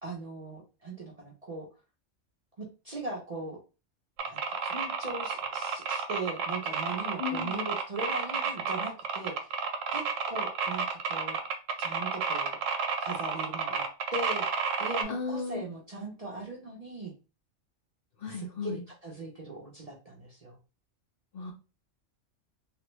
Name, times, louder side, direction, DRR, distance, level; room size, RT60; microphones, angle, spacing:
voice 1, 0.0-1.7 2.6-3.6 4.2-9.6 9.9-11.4 11.8-12.6 13.0-13.8 14.1-14.5 14.8-17.1 18.3-20.6, right 2 dB, 45° right, -2 dB, 0.5 m, -39 dB
sound 1, 4.2-15.0, right 5 dB, 90° right, 1.0 m, -31 dB
voice 2, 7.2-7.7 15.1-15.6 18.2-18.8 21.3-21.5, left 5 dB, 60° left, 3 dB, 0.6 m, -35 dB
3.3 x 2.1 x 3.0 m, 0.32 s
omnidirectional pair, 1.3 m